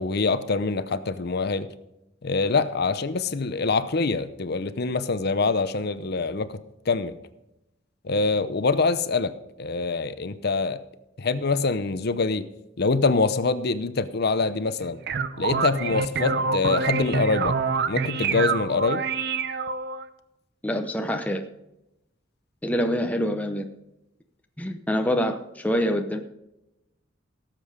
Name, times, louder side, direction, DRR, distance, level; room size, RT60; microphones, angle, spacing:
voice 1, 0.0-1.7 2.2-6.6 6.9-7.2 8.0-9.3 9.6-10.8 11.2-12.5 12.8-15.0 15.4-17.6 17.9-19.0, left 4 dB, 55° left, 13 dB, 0.7 m, -25 dB
sound 1, 14.8-20.1, right 5 dB, 55° right, 0.8 m, -26 dB
voice 2, 20.6-21.4 22.6-23.6 24.6-26.2, equal, 10° left, 5 dB, 0.7 m, -25 dB
17.5 x 7.6 x 5.0 m, 0.91 s
head